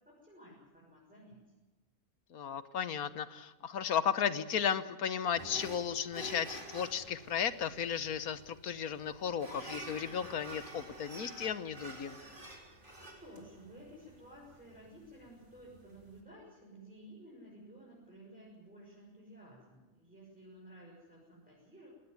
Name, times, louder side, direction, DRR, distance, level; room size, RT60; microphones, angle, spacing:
voice 1, 0.2-1.4 13.0-21.9, right 1 dB, 5° right, -5 dB, 6.9 m, -54 dB
voice 2, 2.3-12.2, left 8 dB, 90° left, 14 dB, 1.6 m, -35 dB
sound 1, 5.3-16.2, right 1 dB, 35° right, 4.2 m, -49 dB
19.5 x 18.5 x 9.6 m, 1.1 s
omnidirectional pair, 1.5 m